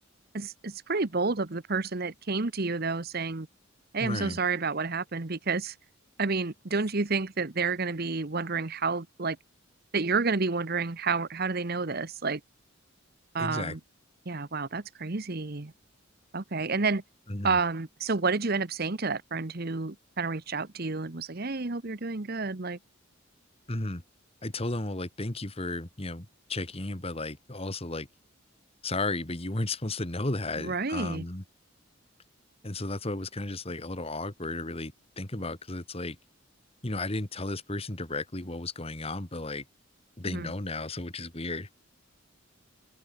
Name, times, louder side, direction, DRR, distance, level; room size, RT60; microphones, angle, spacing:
voice 1, 0.3-3.5 3.9-5.7 6.2-9.4 9.9-12.4 13.3-13.8 14.2-15.7 16.3-17.0 17.4-22.8 30.6-31.2 40.3-40.5, right 4 dB, 50° right, 1.1 m, -30 dB
voice 2, 4.0-4.4 13.4-13.7 17.3-17.6 23.7-24.0 24.4-28.1 28.8-31.4 32.6-36.2 36.8-39.6 40.2-41.7, left 2 dB, 30° left, 2.0 m, -34 dB
open air
head